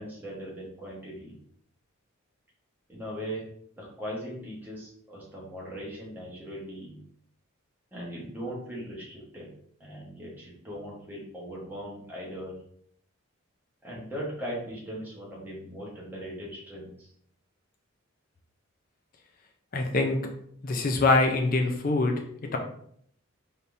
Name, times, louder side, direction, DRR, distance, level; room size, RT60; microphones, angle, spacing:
voice 1, 0.0-1.4 2.9-3.4 3.8-6.9 7.9-9.5 9.8-12.6 13.8-17.1, equal, 10° right, -5 dB, 1.2 m, -39 dB
voice 2, 19.7-20.2 20.6-22.2 22.5-22.6, left 2 dB, 40° left, 3 dB, 0.5 m, -24 dB
4.2 x 3.4 x 2.6 m, 0.65 s
head